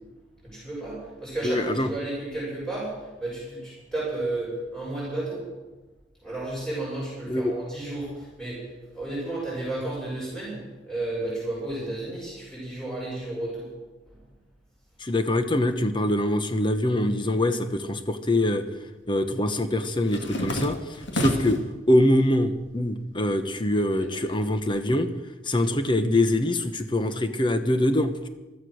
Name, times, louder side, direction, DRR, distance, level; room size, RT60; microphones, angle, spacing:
voice 1, 0.4-5.4 6.2-13.7 14.1-14.2, right 2 dB, 5° left, -8 dB, 6.8 m, -32 dB
voice 2, 1.4-1.9 7.3-7.5 15.0-18.7 19.1-21.6 21.9-25.1 25.4-28.3, left 1 dB, 25° left, 9 dB, 1.1 m, -24 dB
sound 1, 17.8-18.6 18.9-21.7 22.2-22.8 23.1-24.8, left 1 dB, 85° left, 2.4 m, -32 dB
15.0 x 13.5 x 6.5 m, 1.1 s
head